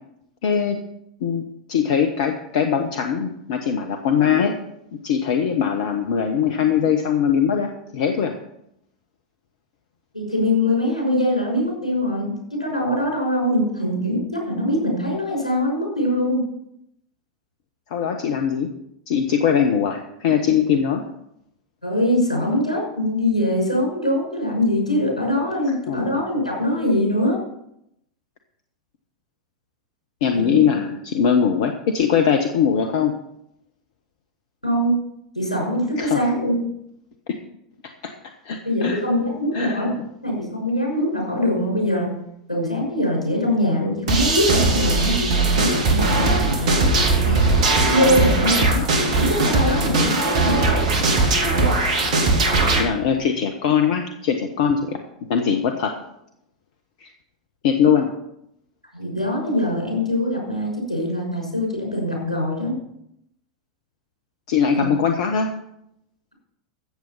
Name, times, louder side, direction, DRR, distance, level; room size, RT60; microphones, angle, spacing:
voice 1, 0.4-0.8 1.2-4.6 5.0-8.3 17.9-18.7 19.1-21.0 25.9-26.2 30.2-33.1 36.0-36.2 37.3-37.4 38.0-38.1 38.4-39.0 39.5-39.8 47.3-47.5 52.7-55.0 55.3-55.9 57.0-57.1 57.6-58.1 64.5-65.5, left 7 dB, 60° left, 6 dB, 1.1 m, -21 dB
voice 2, 10.1-16.4 21.8-27.4 30.5-30.6 34.6-34.9 35.4-36.6 38.6-39.9 40.2-42.1 42.5-46.9 47.9-50.7 58.9-62.7 64.7-64.8, left 1 dB, 90° left, -1 dB, 5.9 m, -23 dB
sound 1, 44.1-52.8, right 3 dB, 60° right, 2.6 m, -19 dB
14.5 x 7.8 x 5.7 m, 0.78 s
figure-of-eight pair, 85°, 4 cm